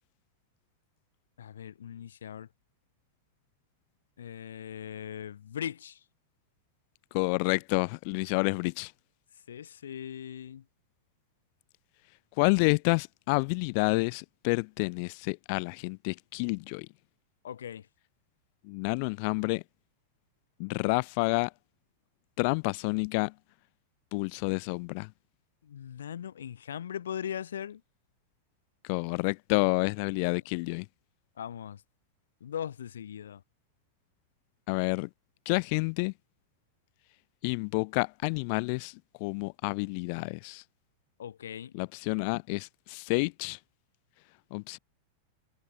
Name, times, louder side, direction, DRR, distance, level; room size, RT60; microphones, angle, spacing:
voice 1, 1.4-2.5 4.2-6.0 9.5-10.6 17.4-17.9 25.6-27.8 31.4-31.8 32.4-33.4 41.2-41.7, left 9 dB, 65° left, 3.9 m, -39 dB
voice 2, 7.1-8.9 12.4-16.9 18.6-19.6 20.6-21.5 22.4-23.3 24.1-25.1 28.8-30.9 34.7-35.1 35.4-36.1 37.4-40.6 41.7-43.6 44.5-44.8, left 33 dB, 45° left, 3.3 m, -29 dB
figure-of-eight pair, 90°, 0 cm